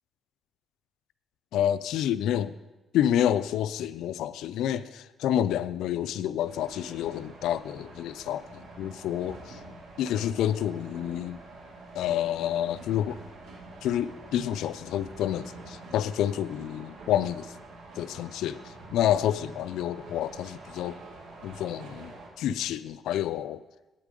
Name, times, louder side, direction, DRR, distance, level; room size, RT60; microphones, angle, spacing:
voice 1, 1.5-2.5 2.9-9.6 10.0-11.4 11.9-13.2 13.8-17.5 18.0-21.0 21.4-22.1 22.4-23.6, left 11 dB, 85° left, 15 dB, 0.3 m, -29 dB
sound 1, 6.4-22.3, right 2 dB, 80° right, 2.1 m, -47 dB
9.1 x 8.4 x 5.1 m, 1.1 s
cardioid pair, 110°, 0 cm